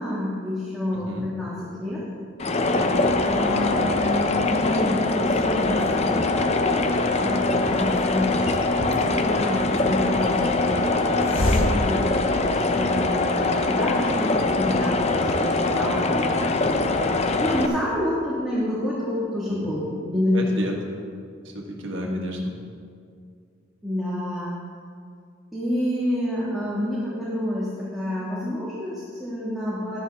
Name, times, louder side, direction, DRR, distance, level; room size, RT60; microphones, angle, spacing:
voice 1, 0.0-2.0 3.2-16.8 17.4-20.7 22.0-22.2 23.8-24.5 25.5-30.0, left 1 dB, ahead, -9 dB, 1.6 m, -28 dB
voice 2, 0.9-1.3 2.7-3.2 19.5-19.8 20.3-20.7 21.5-22.5, equal, 70° right, 0 dB, 1.6 m, -32 dB
sound 1, 2.4-17.7, left 2 dB, 30° left, 0.5 m, -23 dB
Hiss, 7.5-13.0, left 1 dB, 75° left, 1.2 m, -31 dB
11.0 x 10.5 x 3.5 m, 2.2 s
head